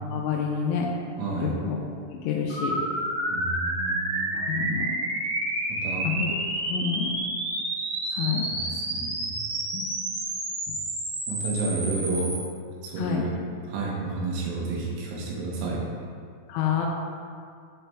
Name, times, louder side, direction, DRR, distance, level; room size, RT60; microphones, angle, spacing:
voice 1, 0.1-0.9 1.4-1.8 2.2-2.8 4.3-5.0 6.1-6.4 6.7-7.1 8.1-8.5 9.7-10.0 13.0-13.3 16.5-16.9, left 7 dB, 85° left, 0 dB, 2.9 m, -28 dB
voice 2, 1.2-1.6 3.3-4.5 5.7-6.1 8.4-9.4 11.3-12.3 12.8-13.3 13.7-15.9, right 3 dB, 85° right, -3 dB, 3.9 m, -31 dB
sound 1, 2.5-12.4, right 1 dB, 65° right, 3.8 m, -30 dB
10.0 x 4.1 x 3.4 m, 2.2 s
omnidirectional pair, 6.0 m